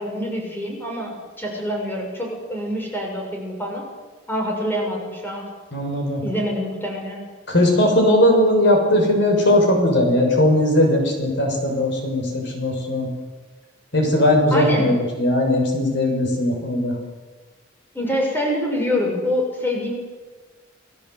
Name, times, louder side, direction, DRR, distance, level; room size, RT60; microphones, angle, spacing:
voice 1, 0.0-3.8 4.3-5.5 6.2-7.3 14.5-14.9 17.9-19.9, equal, 10° left, 0 dB, 6.2 m, -26 dB
voice 2, 5.7-6.2 7.5-13.1 13.9-16.9, left 1 dB, 60° left, 2 dB, 6.4 m, -18 dB
29.5 x 20.5 x 8.2 m, 1.3 s
head